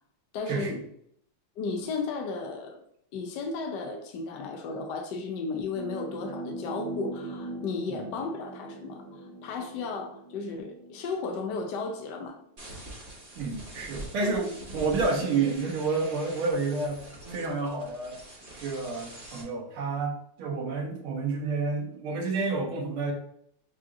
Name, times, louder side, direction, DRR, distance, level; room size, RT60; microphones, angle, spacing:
voice 1, 0.3-0.8 1.6-2.8 3.1-12.4 14.2-14.3, left 4 dB, 70° left, 3 dB, 1.0 m, -34 dB
sound 1, 5.7-11.6 12.6-12.7 14.4-15.5, right 1 dB, 50° right, 0.8 m, -41 dB
sound 2, 12.6-19.4, right 1 dB, 20° right, 1.2 m, -44 dB
voice 2, 13.4-17.0 17.3-18.2 18.6-23.1, right 4 dB, 75° right, 1 dB, 1.8 m, -29 dB
6.2 x 2.9 x 2.5 m, 0.67 s
omnidirectional pair, 2.4 m